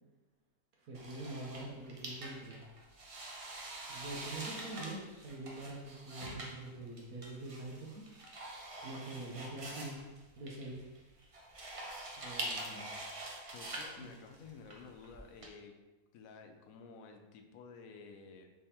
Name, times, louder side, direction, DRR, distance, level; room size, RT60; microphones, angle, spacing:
voice 1, 0.8-2.6 3.9-8.1 8.8-10.1 10.3-10.7 12.2-12.9 14.0-14.1, right 2 dB, 85° right, -2 dB, 1.2 m, -45 dB
sound 1, 0.9-15.5, right 1 dB, 45° right, 0.4 m, -45 dB
voice 2, 13.5-15.7 16.1-18.5, left 5 dB, 80° left, 4 dB, 1.0 m, -52 dB
3.5 x 3.4 x 4.2 m, 1.2 s
omnidirectional pair, 1.5 m